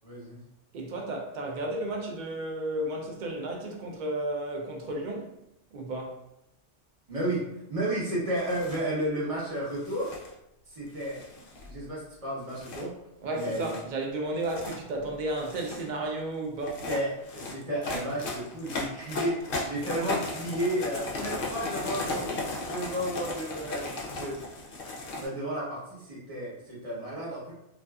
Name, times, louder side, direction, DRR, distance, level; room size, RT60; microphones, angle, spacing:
voice 1, 0.0-0.4 7.1-10.1 10.7-11.2 11.7-12.9 13.3-13.8 16.9-22.4 22.6-24.5 25.1-27.5, right 1 dB, 35° right, 0.8 m, -32 dB
voice 2, 0.7-5.4 5.7-6.2 13.2-16.8, right 1 dB, 55° right, 0.5 m, -33 dB
sound 1, 8.4-8.9 9.7-10.3 11.0-11.8 12.5-12.8 13.4-13.8 14.3-14.8 15.3-15.9 16.6-25.3, left 2 dB, 60° left, 0.7 m, -36 dB
2.5 x 2.4 x 2.3 m
omnidirectional pair, 1.2 m